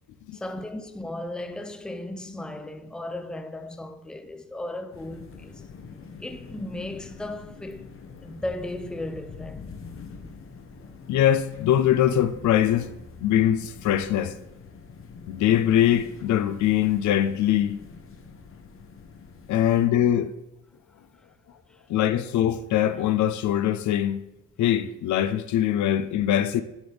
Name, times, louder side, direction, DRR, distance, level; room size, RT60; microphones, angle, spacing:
voice 1, 0.3-5.7 6.2-7.9 8.2-9.6 21.7-21.8, left 1 dB, 5° left, 0.5 m, -36 dB
sound 1, 4.9-19.9, left 5 dB, 45° left, 0.9 m, -45 dB
voice 2, 11.1-12.9 13.2-14.4 15.3-17.8 19.5-20.3 21.9-24.2 24.6-26.6, left 11 dB, 70° left, 0.5 m, -22 dB
10.0 x 4.0 x 3.4 m
cardioid pair, 90°, 30 cm